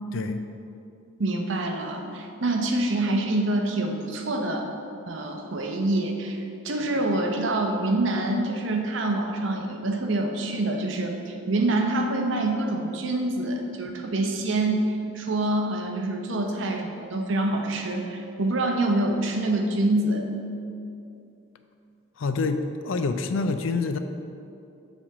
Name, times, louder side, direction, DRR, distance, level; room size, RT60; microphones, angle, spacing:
voice 1, 1.2-4.7 5.1-20.2, right 2 dB, 70° right, 3 dB, 0.7 m, -26 dB
voice 2, 22.2-24.0, left 4 dB, 75° left, 8 dB, 0.4 m, -26 dB
7.2 x 3.5 x 5.9 m, 2.6 s
head